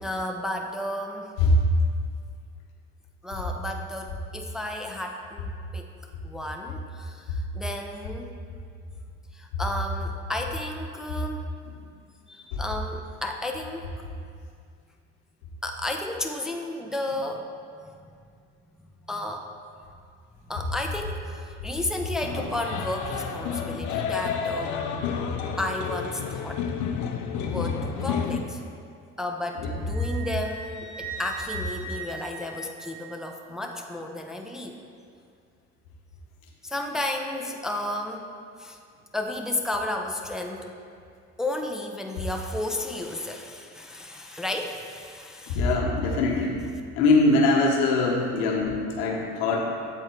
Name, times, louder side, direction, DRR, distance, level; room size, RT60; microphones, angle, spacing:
voice 1, 0.0-1.3 3.2-5.9 6.2-8.4 9.3-11.4 12.3-13.9 15.6-17.5 17.8-17.9 19.1-19.5 20.5-26.7 27.4-28.6 29.2-34.8 36.6-38.3 38.6-38.8 39.1-40.7 41.4-45.7, left 1 dB, ahead, 2 dB, 0.4 m, -33 dB
sound 1, 22.2-28.4, left 6 dB, 65° left, 0.6 m, -30 dB
Wind instrument woodwind instrument, 29.9-33.4, right 3 dB, 80° right, 0.9 m, -39 dB
voice 2, 45.5-46.6 47.0-49.7, left 3 dB, 85° left, -1 dB, 1.0 m, -22 dB
7.8 x 3.6 x 4.4 m, 2.2 s
supercardioid pair, 80°, 32 cm